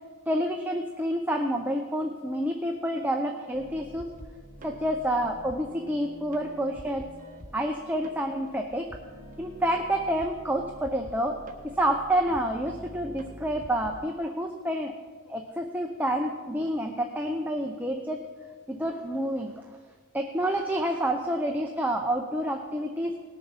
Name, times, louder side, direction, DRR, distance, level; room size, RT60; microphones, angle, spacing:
voice 1, 0.3-4.1 4.6-7.1 7.5-9.0 9.4-14.9 15.3-18.2 18.7-19.7 20.1-23.2, right 1 dB, 10° right, 2 dB, 0.6 m, -28 dB
sound 1, 3.5-14.0, right 1 dB, 35° right, 1.2 m, -47 dB
18.5 x 7.1 x 5.7 m, 1.5 s
head